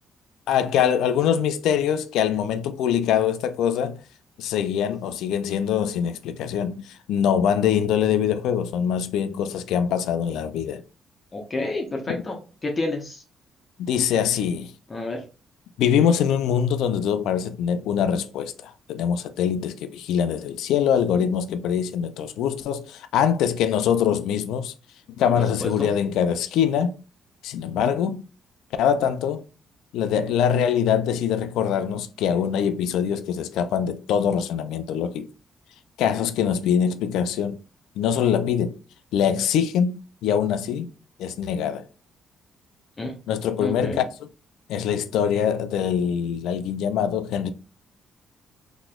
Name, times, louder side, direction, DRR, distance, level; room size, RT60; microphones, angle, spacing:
voice 1, 0.5-4.0 4.4-10.8 12.1-12.2 13.8-14.7 15.8-24.7 25.2-27.0 27.4-28.3 28.8-29.4 29.9-35.3 36.0-37.6 38.0-38.8 39.1-40.9 41.2-41.9 43.3-44.3 44.7-47.5, left 8 dB, 90° left, 0.4 m, -23 dB
voice 2, 11.3-13.2 14.9-15.2 25.2-25.3 25.6-25.9 43.0-43.1 43.6-44.0, left 2 dB, 30° left, 0.8 m, -29 dB
4.0 x 2.9 x 2.3 m
cardioid pair, 90°, 0 cm